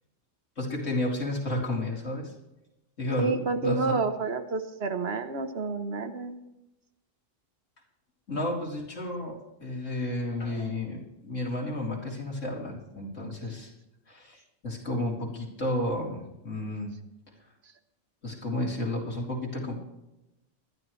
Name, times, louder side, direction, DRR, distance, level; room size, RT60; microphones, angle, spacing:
voice 1, 0.6-2.3 3.0-4.0 8.3-13.7 14.1-16.9 18.2-19.8, left 1 dB, 80° left, -2 dB, 3.7 m, -32 dB
voice 2, 3.2-6.4, right 4 dB, 60° right, 8 dB, 1.2 m, -29 dB
20.5 x 12.5 x 3.2 m, 0.95 s
omnidirectional pair, 1.3 m